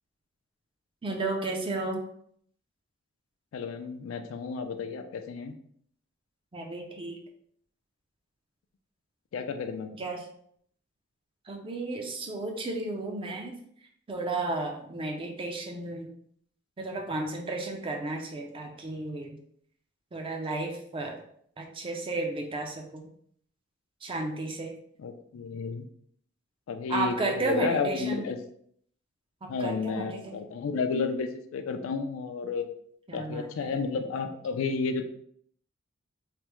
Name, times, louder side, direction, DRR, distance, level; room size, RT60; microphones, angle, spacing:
voice 1, 1.0-2.0 6.5-7.2 10.0-10.3 11.5-13.5 14.1-16.1 16.8-19.4 20.1-21.2 21.6-23.1 24.0-24.7 26.9-28.2 29.4-30.3 33.1-33.5, right 2 dB, 25° right, 2 dB, 0.4 m, -33 dB
voice 2, 3.5-5.5 9.3-10.0 25.0-25.9 26.7-28.4 29.5-32.7 33.1-35.0, left 5 dB, 75° left, 7 dB, 0.3 m, -32 dB
3.3 x 2.0 x 3.0 m, 0.65 s
head